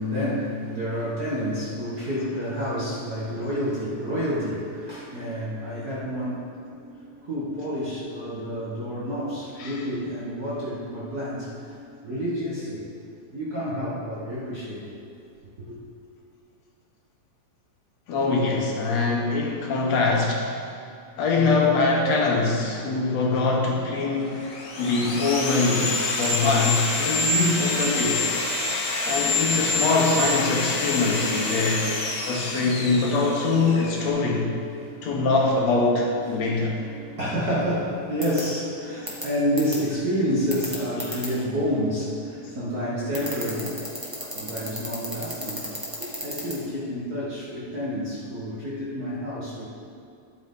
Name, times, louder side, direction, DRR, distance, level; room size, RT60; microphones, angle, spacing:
voice 1, 0.0-12.9 13.3-14.9 15.7-15.8 34.7-35.1 36.3-49.6, equal, 45° right, -8 dB, 1.4 m, -29 dB
voice 2, 18.1-20.5 21.2-24.4 24.8-28.2 29.0-31.9 32.3-34.5 35.0-36.8, left 3 dB, 70° left, -1 dB, 2.2 m, -23 dB
Sawing, 24.2-34.1, left 3 dB, 90° left, 0.8 m, -27 dB
sound 1, 38.2-38.4 39.1-39.2 39.6-39.8 40.5-41.3 43.1-46.5, equal, 15° right, 0.9 m, -32 dB
11.5 x 8.3 x 3.7 m, 2.4 s
omnidirectional pair, 3.3 m